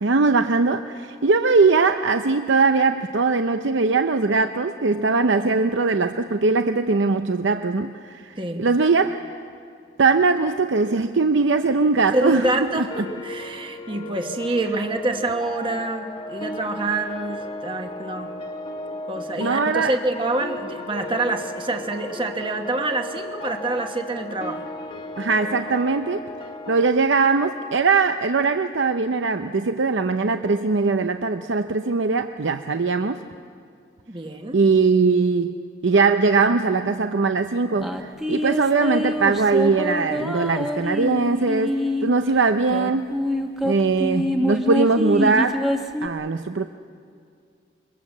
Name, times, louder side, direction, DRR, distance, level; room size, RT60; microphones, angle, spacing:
voice 1, 0.0-9.2 10.0-12.8 19.4-19.9 25.2-26.3 26.7-33.2 34.5-35.6 35.8-43.1 43.6-45.6 46.0-46.7, right 4 dB, 75° right, 7 dB, 0.7 m, -21 dB
voice 2, 8.4-8.7 12.1-18.3 19.1-24.6 34.1-34.6, right 2 dB, 25° right, 5 dB, 1.2 m, -26 dB
sound 1, 12.4-26.9, left 2 dB, 25° left, 1.3 m, -35 dB
sound 2, 37.8-42.1 42.7-46.1, left 1 dB, ahead, 1.2 m, -26 dB
23.5 x 23.5 x 7.4 m, 2.3 s
head